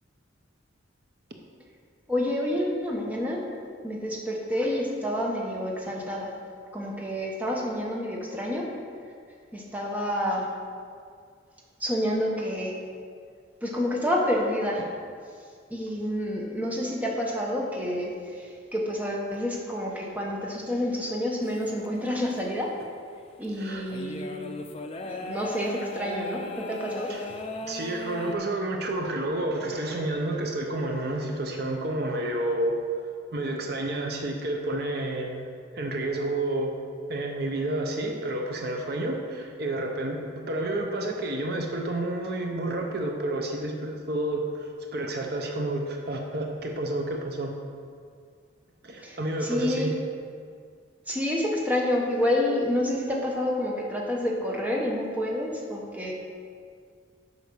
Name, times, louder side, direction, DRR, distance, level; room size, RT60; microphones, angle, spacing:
voice 1, 2.1-3.4 3.8-6.3 6.7-8.7 9.5-10.5 11.8-12.8 13.6-14.9 15.7-22.7 23.4-24.4 25.0-27.4 49.0-50.0 51.1-56.1, left 1 dB, 10° right, -2 dB, 1.1 m, -28 dB
sound 1, 21.4-21.9 22.3-22.4 23.4-23.5 23.9-28.4, left 1 dB, 30° left, 0.5 m, -37 dB
voice 2, 23.5-23.9 27.1-27.3 27.7-32.8 33.3-36.7 37.1-47.5 48.8-49.9, right 1 dB, 50° right, 2 dB, 0.8 m, -30 dB
8.3 x 5.4 x 6.2 m, 2.1 s
head